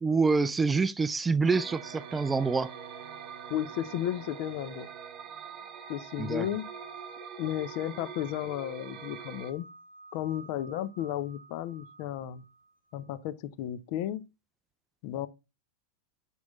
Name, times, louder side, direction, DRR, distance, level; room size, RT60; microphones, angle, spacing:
voice 1, 0.0-2.7 6.2-6.5, right 4 dB, 15° right, 0.3 m, -26 dB
sound 1, 1.4-9.5, right 7 dB, 30° right, 0.9 m, -45 dB
Wind instrument woodwind instrument, 1.5-5.3, right 6 dB, 70° right, 0.7 m, -50 dB
voice 2, 3.5-4.9 5.9-6.6 7.4-9.7 10.1-12.4 12.9-14.2 15.0-15.3, left 12 dB, 45° left, 0.6 m, -33 dB
sound 2, 5.5-13.2, right 2 dB, 85° left, 0.9 m, -53 dB
6.1 x 5.5 x 3.5 m
figure-of-eight pair, 90°, 0 cm